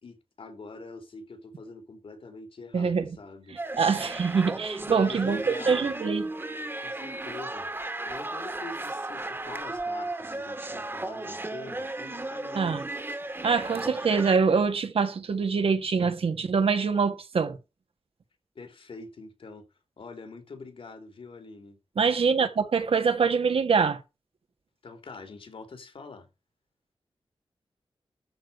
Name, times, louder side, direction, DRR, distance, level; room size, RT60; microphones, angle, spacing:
voice 1, 0.0-4.0 4.9-6.0 6.8-7.7 8.0-12.8 18.5-19.7 20.0-21.8 24.8-26.3, left 3 dB, 70° left, 3.3 m, -44 dB
voice 2, 2.7-3.2 3.8-6.2 12.5-12.8 13.4-17.6 22.0-24.0, right 5 dB, 75° right, 1.7 m, -24 dB
sound 1, 3.6-14.4, right 2 dB, 25° right, 1.6 m, -35 dB
13.0 x 4.9 x 6.7 m
wide cardioid pair, 105°, 10 cm